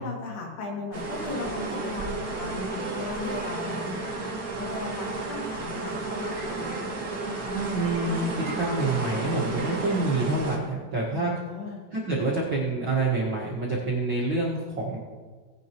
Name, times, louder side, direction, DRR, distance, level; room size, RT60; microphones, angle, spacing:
voice 1, 0.0-4.0 4.6-6.7 11.1-11.8, left 3 dB, 85° left, -2 dB, 4.6 m, -37 dB
sound 1, 0.9-10.6, right 2 dB, 75° right, 0.8 m, -32 dB
voice 2, 7.7-11.3 11.9-15.0, right 2 dB, 50° right, -6 dB, 1.5 m, -27 dB
18.0 x 10.5 x 3.0 m, 1.5 s
omnidirectional pair, 4.6 m